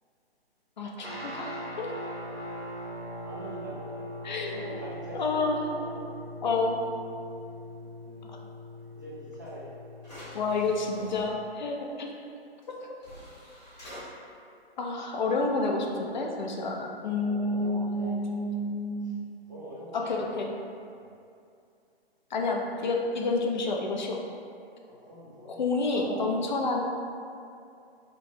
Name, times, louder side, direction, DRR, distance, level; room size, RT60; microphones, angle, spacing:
voice 1, 0.8-1.9 4.2-4.5 5.1-5.7 6.4-6.7 10.3-12.1 12.7-12.9 13.8-13.9 14.8-19.2 19.9-20.5 22.3-24.2 25.5-26.8, left 3 dB, 45° left, 0 dB, 0.4 m, -29 dB
sound 1, 1.0-11.5, equal, 75° right, 1.0 m, -41 dB
voice 2, 3.2-6.1 8.0-8.4 8.9-9.7 10.5-11.1 17.2-18.3 19.0-19.1 19.4-20.3 20.9-21.1 24.8-26.4, equal, 20° right, -7 dB, 0.3 m, -44 dB
sound 2, 9.5-9.6 10.0-11.2 12.6-12.7 13.0-14.0, equal, 10° left, 1.0 m, -47 dB
3.0 x 2.1 x 4.2 m, 2.5 s
hypercardioid pair, 150°, 31 cm